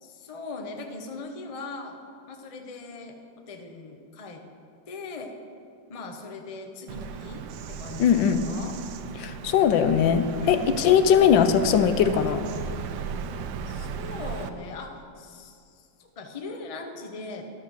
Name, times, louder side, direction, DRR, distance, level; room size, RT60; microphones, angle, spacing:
voice 1, 0.0-2.0 2.3-3.2 3.5-4.4 4.9-5.3 5.9-8.8 10.4-10.8 13.7-17.4, left 3 dB, 40° left, 4 dB, 0.4 m, -40 dB
Bird vocalization bird call bird song, 6.9-14.5, right 7 dB, 80° right, 1.3 m, -36 dB
voice 2, 8.0-8.4 9.2-12.4, left 8 dB, 80° left, 10 dB, 1.4 m, -20 dB
12.0 x 6.6 x 6.4 m, 2.4 s
omnidirectional pair, 2.1 m